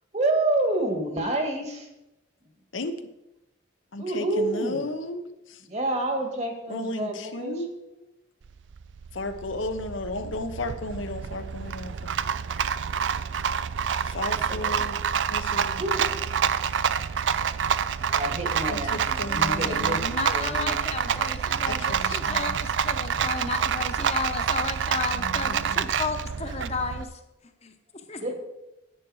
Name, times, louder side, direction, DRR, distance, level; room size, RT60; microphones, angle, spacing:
voice 1, 0.1-1.9 4.0-4.9 5.7-7.6 14.6-14.7 15.6-16.2 18.0-20.7 21.1-21.3 28.2-28.3, right 2 dB, 35° right, 4 dB, 1.6 m, -28 dB
voice 2, 3.9-5.7 6.7-8.2 9.1-12.0 14.0-15.0 15.3-15.8 18.7-20.3 21.6-22.5 25.1-25.9, left 2 dB, 85° left, 8 dB, 1.0 m, -34 dB
Rattle, 8.4-27.0, right 7 dB, 75° right, 0.4 m, -27 dB
voice 3, 20.2-27.2 27.6-27.7 28.1-28.3, left 4 dB, 35° left, 7 dB, 0.9 m, -33 dB
10.0 x 9.3 x 4.8 m, 0.93 s
head